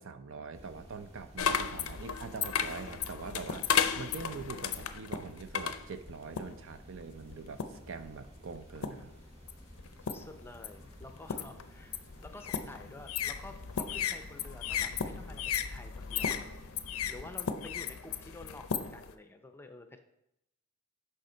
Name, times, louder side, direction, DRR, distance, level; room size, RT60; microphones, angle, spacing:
voice 1, 0.0-3.7 4.0-9.1 14.8-14.9, right 5 dB, 65° right, 10 dB, 0.5 m, -44 dB
sound 1, 0.5-17.1, equal, 30° right, 1.7 m, -53 dB
sound 2, 1.4-6.7 7.3-7.9 8.6-9.1 9.5-19.1, left 7 dB, 75° left, 0.5 m, -35 dB
voice 2, 10.0-16.4 17.1-20.0, left 2 dB, 10° left, 7 dB, 0.5 m, -50 dB
6.6 x 5.6 x 4.4 m, 0.82 s
head